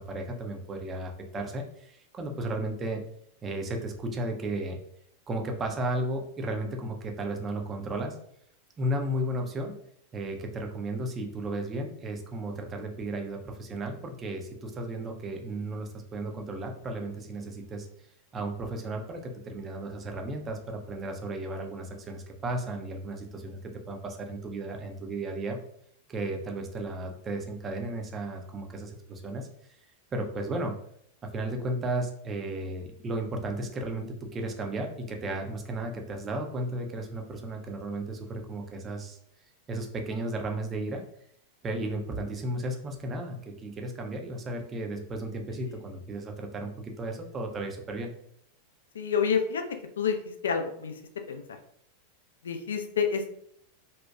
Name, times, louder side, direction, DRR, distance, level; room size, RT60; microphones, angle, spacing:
voice 1, 0.0-3.0 3.4-4.8 5.3-8.2 8.8-9.8 10.1-17.9 18.3-25.6 26.1-29.5 30.1-30.7 31.2-39.2 39.7-41.0 41.6-48.1, right 1 dB, 25° right, 3 dB, 0.4 m, -34 dB
voice 2, 48.9-49.6 50.0-50.2 50.4-50.9 51.3-51.6 52.4-53.3, left 6 dB, 65° left, 5 dB, 0.3 m, -28 dB
2.7 x 2.2 x 2.2 m, 0.68 s
figure-of-eight pair, 90°, 0 cm